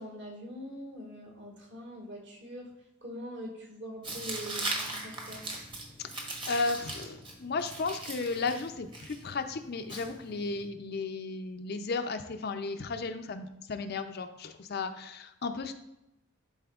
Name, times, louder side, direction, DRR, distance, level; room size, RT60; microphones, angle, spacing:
voice 1, 0.0-2.7 3.0-5.5, equal, 55° right, -1 dB, 1.8 m, -43 dB
Tearing, 4.0-10.7, right 2 dB, 20° right, 1.0 m, -40 dB
voice 2, 6.5-15.7, left 3 dB, 45° left, 8 dB, 0.4 m, -34 dB
11.0 x 4.2 x 2.4 m, 0.89 s
head